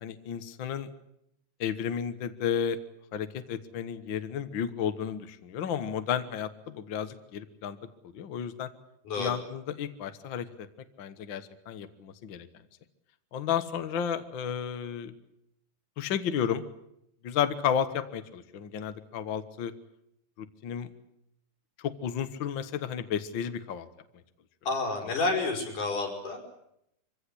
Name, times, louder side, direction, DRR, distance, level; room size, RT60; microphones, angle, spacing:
voice 1, 0.0-0.9 1.6-2.8 3.1-7.8 8.1-8.7 9.2-10.7 11.0-12.5 13.3-15.1 16.0-16.6 17.2-19.7 20.4-20.9 21.8-23.9 25.0-25.1, left 8 dB, 55° left, 10 dB, 1.4 m, -32 dB
voice 2, 9.1-9.4 24.7-26.4, left 3 dB, 75° left, 1 dB, 6.4 m, -29 dB
24.5 x 16.5 x 10.0 m, 0.78 s
omnidirectional pair, 3.6 m